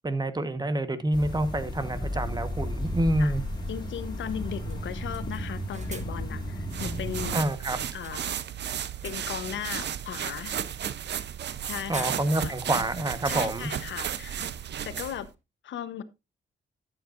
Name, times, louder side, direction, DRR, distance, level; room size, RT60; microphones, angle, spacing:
voice 1, 0.0-3.4 7.3-7.8 11.9-13.7, right 1 dB, 20° right, 1.2 m, -27 dB
sound 1, 1.1-7.4, equal, 25° left, 4.6 m, -34 dB
sound 2, 1.1-1.2 3.3-3.4 3.7-3.8 4.3-4.4 4.7-6.4 7.4-8.5 8.8-9.5 9.9-10.1 11.4-11.6 11.9-12.7 12.9-13.0 13.6-14.9, right 4 dB, 40° right, 1.4 m, -46 dB
voice 2, 3.7-7.4 7.9-8.4 9.0-10.6 11.7-12.1 12.4-12.5 13.2-14.4 14.8-15.3 15.6-16.0, left 9 dB, 85° left, 1.0 m, -37 dB
sound 3, 6.7-15.3, right 9 dB, 65° right, 0.7 m, -34 dB
13.5 x 7.9 x 2.5 m
cardioid pair, 95°, 19 cm